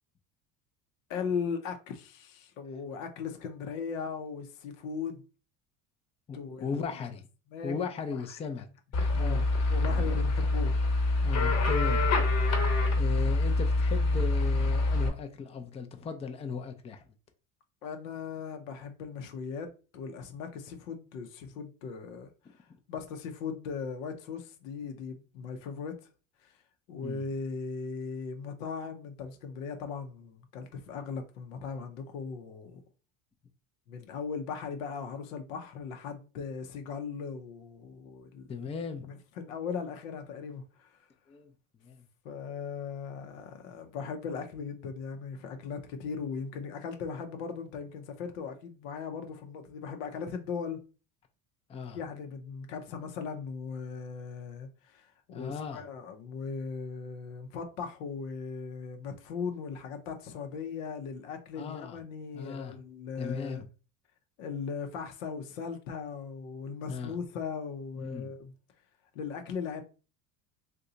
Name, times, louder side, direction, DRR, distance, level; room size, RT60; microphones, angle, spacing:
voice 1, 1.1-5.2 6.3-6.8 7.5-7.7 9.2-9.4 9.7-11.2 17.8-19.7 19.9-22.3 22.6-26.0 26.4-26.5 26.9-32.8 33.9-38.5 39.4-41.0 42.2-50.8 51.9-63.6 64.4-68.5 69.1-69.8, left 5 dB, 90° left, 0.7 m, -38 dB
voice 2, 6.3-7.3 7.6-8.7 9.1-9.5 11.2-12.1 12.9-17.0 27.0-27.2 38.5-39.1 41.3-41.5 41.8-42.0 51.7-52.0 55.3-55.8 61.6-62.0 62.3-62.8 63.2-63.7 66.9-67.2 68.0-68.3, left 5 dB, 15° left, 0.4 m, -37 dB
sound 1, 8.9-15.1, left 2 dB, 40° left, 1.1 m, -26 dB
2.7 x 2.2 x 3.8 m
supercardioid pair, 100°, 38 cm